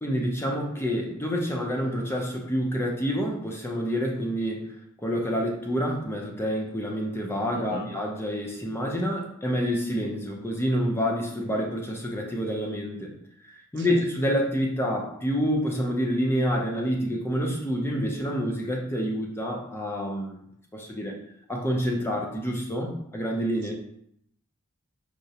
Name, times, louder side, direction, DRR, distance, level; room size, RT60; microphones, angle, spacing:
voice 1, 0.0-4.7 5.0-13.1 13.4-20.4 20.7-21.2 21.5-23.7, equal, 10° left, 0 dB, 0.5 m, -28 dB
voice 2, 7.5-7.9 13.8-14.0, right 3 dB, 50° right, 3 dB, 0.4 m, -38 dB
4.7 x 2.0 x 2.7 m, 0.72 s
head